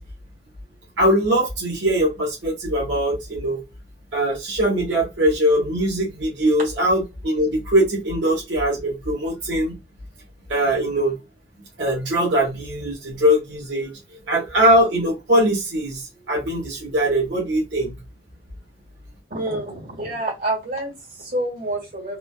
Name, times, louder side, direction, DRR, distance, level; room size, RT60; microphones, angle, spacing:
voice 1, 1.0-3.6 4.1-9.8 10.5-11.1 11.8-13.9 14.3-18.0, equal, 85° right, 1.5 m, -21 dB
voice 2, 19.3-22.2, right 1 dB, 50° right, 1.9 m, -28 dB
3.8 x 2.4 x 2.3 m
head